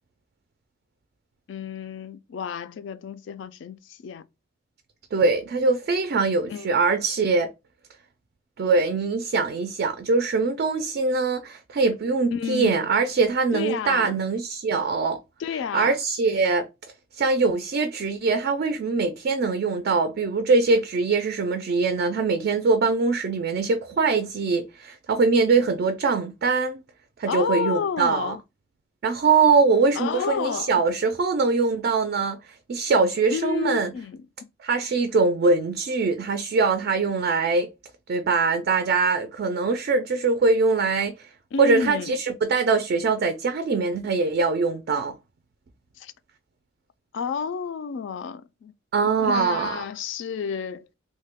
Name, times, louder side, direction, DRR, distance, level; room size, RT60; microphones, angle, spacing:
voice 1, 1.5-4.2 6.5-6.8 12.3-12.9 13.5-14.2 15.4-16.0 27.3-28.4 29.9-30.7 33.3-34.2 41.5-42.2 46.0-46.1 47.1-48.7 49.2-50.9, left 6 dB, 65° left, 0.3 m, -30 dB
voice 2, 5.1-7.5 8.6-15.2 15.7-16.7 17.2-26.8 27.2-28.4 29.0-32.4 32.7-33.9 34.6-37.7 38.1-41.1 41.6-45.1 48.9-49.8, right 4 dB, 50° right, 0.3 m, -22 dB
3.1 x 2.1 x 3.4 m
head